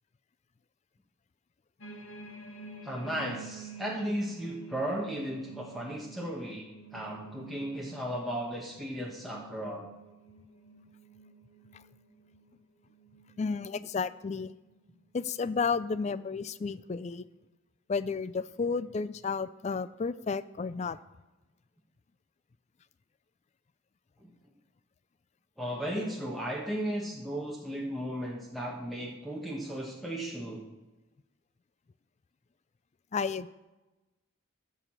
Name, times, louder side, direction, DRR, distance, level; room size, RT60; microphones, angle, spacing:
sound 1, 1.8-14.1 14.7-14.9 15.3-16.1 16.7-16.8, right 4 dB, 80° left, 1.3 m, -50 dB
voice 1, 2.8-9.9 24.2-24.3 25.6-30.6, equal, ahead, -2 dB, 1.1 m, -35 dB
voice 2, 13.4-14.5 15.1-17.2 17.9-21.0 33.1-33.5, left 5 dB, 30° left, 16 dB, 0.3 m, -32 dB
14.0 x 4.8 x 7.4 m, 1.1 s
head